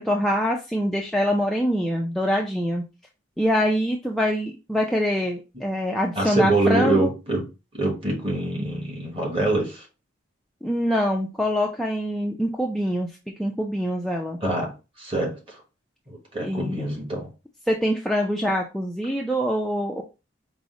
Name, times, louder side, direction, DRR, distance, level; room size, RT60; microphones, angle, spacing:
voice 1, 0.0-2.8 3.4-7.1 10.6-13.1 13.4-14.4 16.4-16.8 17.7-20.0, equal, ahead, 0 dB, 0.3 m, -24 dB
voice 2, 6.1-7.4 7.7-9.9 14.4-14.7 15.0-15.6 16.1-17.3, right 2 dB, 25° right, -1 dB, 1.3 m, -25 dB
4.9 x 2.0 x 3.7 m, 0.28 s
head